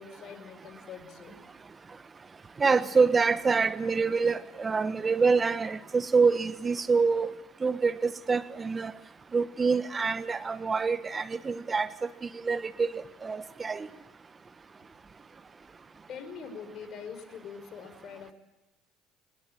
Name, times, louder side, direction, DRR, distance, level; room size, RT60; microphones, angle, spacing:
voice 1, 0.0-1.5 16.1-18.3, left 6 dB, 50° left, 7 dB, 5.3 m, -43 dB
voice 2, 2.6-7.3 7.6-8.9 9.3-11.9 12.3-13.9, right 4 dB, 30° right, 14 dB, 1.1 m, -26 dB
23.5 x 21.0 x 9.0 m, 1.0 s
hypercardioid pair, 65°, 0 cm